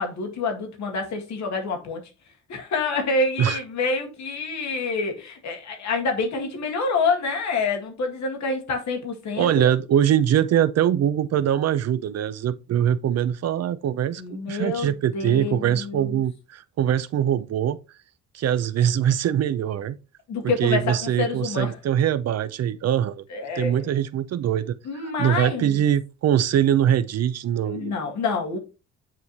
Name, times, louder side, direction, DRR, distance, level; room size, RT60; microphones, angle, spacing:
voice 1, 0.0-2.0 2.5-9.7 14.2-16.2 20.3-21.7 23.3-23.9 24.9-25.8 27.7-28.6, left 3 dB, 65° left, 2.0 m, -27 dB
voice 2, 9.4-17.8 18.3-20.0 20.4-23.2 23.5-27.9, right 10 dB, 55° right, 0.6 m, -23 dB
9.0 x 3.1 x 4.1 m
cardioid pair, 90°, 30 cm